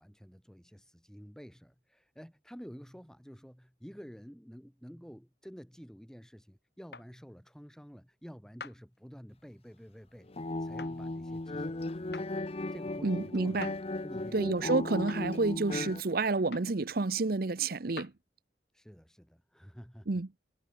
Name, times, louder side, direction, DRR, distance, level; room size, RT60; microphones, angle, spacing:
voice 1, 0.0-10.3 10.6-12.4 12.7-13.8 14.0-14.7 18.7-20.1, equal, 5° left, 6.5 m, -50 dB
sound 1, 6.9-7.1 8.6-8.8 10.8-10.9 12.1-12.3 13.6-13.8 15.1-15.2 16.5-16.7 18.0-18.1, left 4 dB, 65° left, 2.4 m, -45 dB
sound 2, 10.3-16.0, left 2 dB, 35° left, 0.8 m, -36 dB
voice 2, 13.0-13.7 14.3-18.1 20.1-20.3, right 3 dB, 55° right, 0.8 m, -29 dB
head